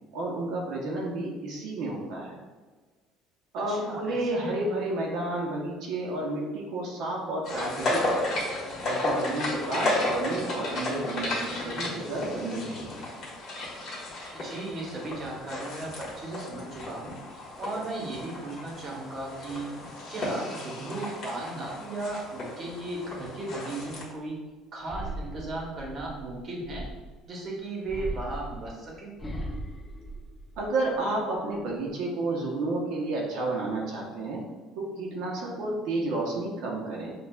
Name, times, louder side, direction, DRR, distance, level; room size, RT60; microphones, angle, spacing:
voice 1, 0.1-2.4 3.5-8.4 8.8-12.9 30.6-34.4 34.7-37.1, right 2 dB, 65° right, -3 dB, 0.7 m, -31 dB
voice 2, 3.7-4.5 14.3-19.7 20.1-24.4 24.7-26.8 27.3-29.1, right 2 dB, 35° right, -2 dB, 1.0 m, -36 dB
sound 1, 7.4-24.0, left 1 dB, 45° left, 1.4 m, -33 dB
sound 2, 24.8-27.2 27.8-30.9 31.3-31.9, right 1 dB, 15° left, 0.6 m, -38 dB
6.5 x 2.3 x 2.3 m, 1.4 s
cardioid pair, 145°, 0 cm